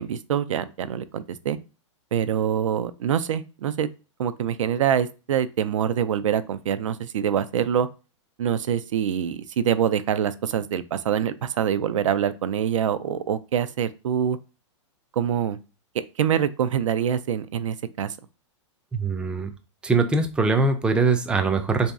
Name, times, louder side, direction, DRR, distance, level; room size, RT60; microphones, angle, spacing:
voice 1, 0.0-1.6 2.1-3.9 4.2-7.9 8.4-14.4 15.1-15.6 16.2-18.2, right 9 dB, 85° right, 13 dB, 0.4 m, -25 dB
voice 2, 18.9-19.5 19.8-21.9, right 3 dB, 5° right, 7 dB, 0.3 m, -22 dB
3.1 x 2.7 x 3.5 m, 0.32 s
hypercardioid pair, 130°, 16 cm